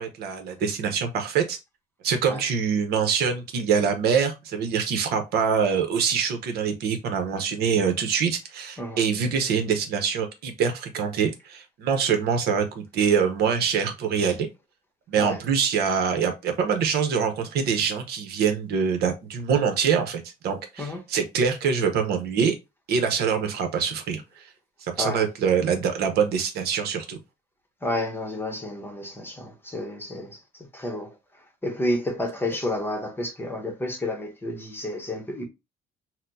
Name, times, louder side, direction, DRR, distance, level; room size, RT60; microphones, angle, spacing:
voice 1, 0.0-1.6 2.0-14.5 15.1-22.5 22.9-24.2 24.8-27.2, right 6 dB, 70° right, 0.8 m, -24 dB
voice 2, 27.8-30.4 30.7-31.1 31.6-35.4, left 1 dB, 15° left, 0.9 m, -30 dB
4.2 x 2.1 x 2.6 m
cardioid pair, 110°, 17 cm